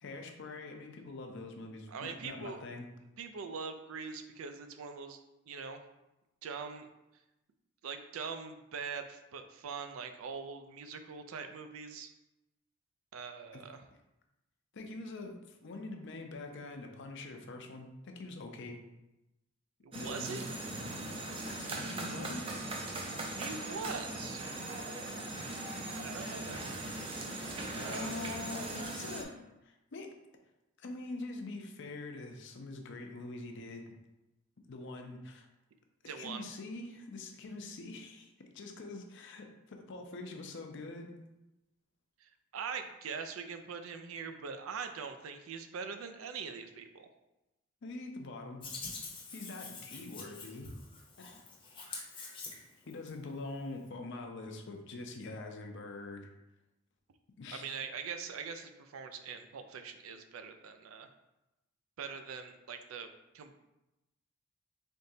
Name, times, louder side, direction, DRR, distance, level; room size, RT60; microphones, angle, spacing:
voice 1, 0.0-2.9 13.5-13.6 14.7-18.8 19.9-20.4 21.5-22.7 27.8-29.4 29.6-30.1 30.8-33.9 34.7-35.5 36.0-41.2 47.8-48.7 49.3-50.7 51.2-51.4 52.9-56.3 57.4-57.8, left 2 dB, 60° left, 4 dB, 0.5 m, -44 dB
voice 2, 1.9-2.6 3.2-5.2 5.5-5.8 6.4-6.9 7.8-12.1 13.1-13.8 19.8-20.5 23.3-24.5 25.0-25.2 26.0-26.5 27.7-28.3 36.1-36.5 42.2-47.1 57.5-61.1 62.0-63.1 63.3-63.5, right 5 dB, 85° right, 7 dB, 0.4 m, -42 dB
sound 1, 19.9-29.2, right 2 dB, 25° right, 0.5 m, -39 dB
Hands, 48.6-53.1, left 3 dB, 25° left, 0.7 m, -45 dB
3.9 x 3.5 x 2.7 m, 0.96 s
head